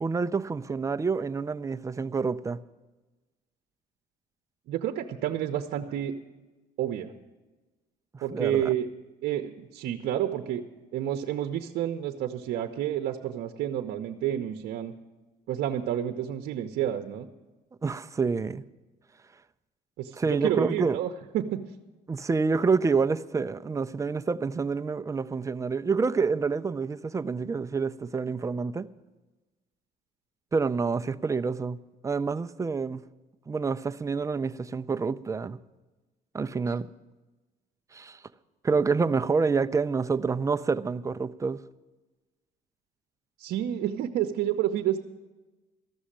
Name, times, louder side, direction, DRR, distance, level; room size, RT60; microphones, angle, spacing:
voice 1, 0.0-2.6 8.1-8.7 17.8-18.6 20.2-21.0 22.1-28.9 30.5-31.8 32.0-33.0 33.5-35.6 36.3-36.9 37.9-38.2 38.6-41.6, right 4 dB, 20° right, 0.5 m, -27 dB
voice 2, 4.7-6.1 6.8-7.1 8.2-8.9 9.2-10.6 10.9-14.9 15.5-17.3 20.0-21.6 43.4-45.0, right 11 dB, 75° right, 0.8 m, -29 dB
14.0 x 6.3 x 10.0 m
cardioid pair, 110°, 17 cm